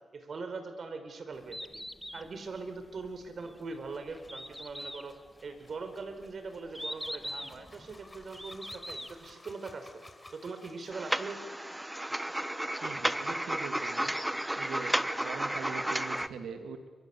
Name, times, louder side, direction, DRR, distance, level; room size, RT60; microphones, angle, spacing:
voice 1, 0.0-1.7 2.1-5.1 5.4-10.1 10.3-11.4, right 4 dB, 65° right, 8 dB, 4.7 m, -41 dB
Bird, 1.3-9.3, equal, ahead, 1.6 m, -43 dB
sound 1, 3.5-11.3, left 2 dB, 25° left, 4.7 m, -56 dB
sound 2, 10.9-16.3, right 1 dB, 15° right, 1.3 m, -32 dB
voice 2, 12.8-14.1 14.6-15.0 15.2-16.9, right 5 dB, 85° right, 6 dB, 2.4 m, -42 dB
29.0 x 24.0 x 7.2 m, 1.5 s
supercardioid pair, 40°, 0 cm